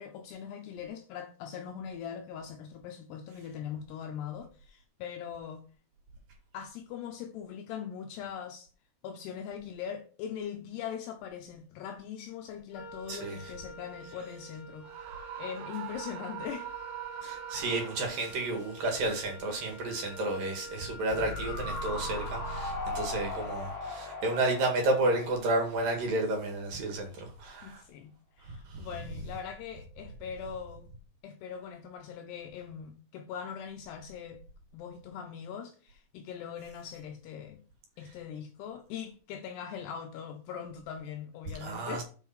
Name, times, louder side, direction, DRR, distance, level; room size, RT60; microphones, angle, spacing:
voice 1, 0.0-5.6 6.5-8.7 9.0-16.7 27.6-30.9 31.2-34.4 34.7-37.6 38.0-42.0, left 8 dB, 80° left, 2.5 m, -41 dB
Wind instrument woodwind instrument, 12.7-23.1, right 1 dB, 60° left, 2.6 m, -47 dB
voice 2, 13.1-13.5 17.2-27.8 28.4-28.9 41.6-42.0, right 2 dB, 55° right, 3.2 m, -31 dB
Screaming, 14.8-18.5, right 12 dB, 75° right, 2.5 m, -43 dB
sound 1, 21.1-26.3 26.6-26.7, left 2 dB, 40° left, 2.2 m, -38 dB
8.2 x 5.3 x 5.7 m
omnidirectional pair, 5.4 m